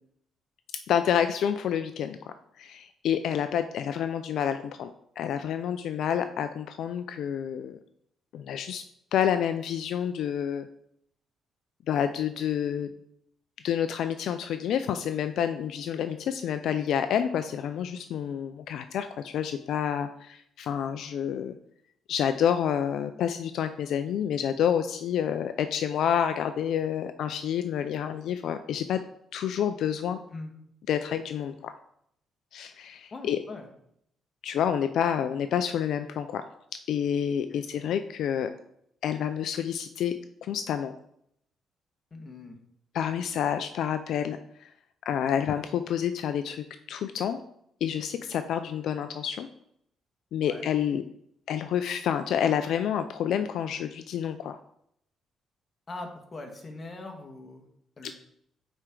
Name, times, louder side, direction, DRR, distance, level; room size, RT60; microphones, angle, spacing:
voice 1, 0.9-4.9 5.2-7.8 8.3-8.8 9.1-10.7 11.9-12.9 13.6-21.6 22.1-29.0 29.3-30.2 30.9-31.7 32.5-33.4 34.4-36.4 36.9-38.5 39.0-40.1 40.4-40.9 42.9-44.7 45.1-47.4 47.8-49.5 50.3-51.0 51.5-54.6 58.0-58.1, left 9 dB, 75° left, 9 dB, 0.4 m, -28 dB
voice 2, 33.1-33.7 37.5-37.6 42.1-42.5 50.4-50.6 55.9-57.6 58.0-58.1, left 2 dB, 30° left, 3 dB, 1.7 m, -41 dB
9.4 x 4.5 x 3.8 m, 0.72 s
cardioid pair, 90°, 0 cm